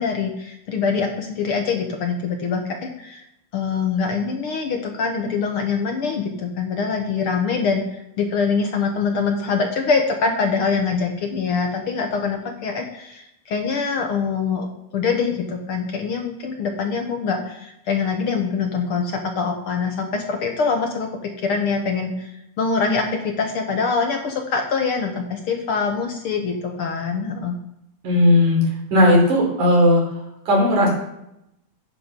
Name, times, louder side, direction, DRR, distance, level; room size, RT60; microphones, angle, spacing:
voice 1, 0.0-3.2 3.5-14.7 14.9-27.5, left 5 dB, 60° left, 3 dB, 1.6 m, -24 dB
voice 2, 28.0-28.6 28.9-30.0 30.5-30.9, left 1 dB, 90° right, -1 dB, 4.8 m, -15 dB
10.0 x 8.0 x 5.3 m, 0.83 s
omnidirectional pair, 3.4 m